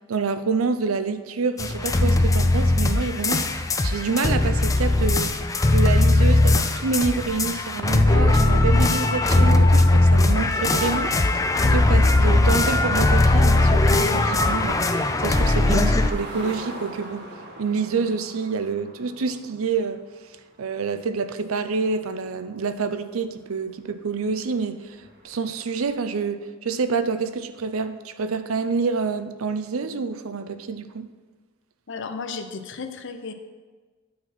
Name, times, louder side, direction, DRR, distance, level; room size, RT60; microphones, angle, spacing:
voice 1, 0.1-5.3 5.6-14.8 15.2-17.3 17.6-20.0 20.6-25.0 25.2-31.1, right 4 dB, 85° right, 0.6 m, -27 dB
sound 1, 1.6-16.1, left 2 dB, 15° left, 0.4 m, -19 dB
sound 2, 14.2-23.3 23.7-23.8 24.2-26.0, right 2 dB, 55° right, 1.4 m, -41 dB
voice 2, 31.9-33.3, left 4 dB, 65° left, 0.7 m, -34 dB
9.4 x 4.2 x 5.9 m
head